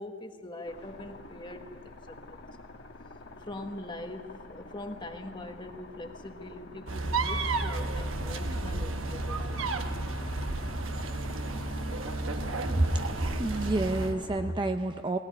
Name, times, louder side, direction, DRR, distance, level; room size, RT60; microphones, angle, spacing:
voice 1, 0.0-2.6 3.4-10.1, left 1 dB, 20° left, 5 dB, 1.2 m, -43 dB
sound 1, 0.6-14.5, left 2 dB, 50° left, 1.5 m, -47 dB
sound 2, 6.9-14.2, right 2 dB, 70° right, 1.1 m, -32 dB
voice 2, 12.7-15.2, right 2 dB, 20° right, 7 dB, 0.6 m, -29 dB
19.5 x 18.0 x 9.8 m, 2.2 s
head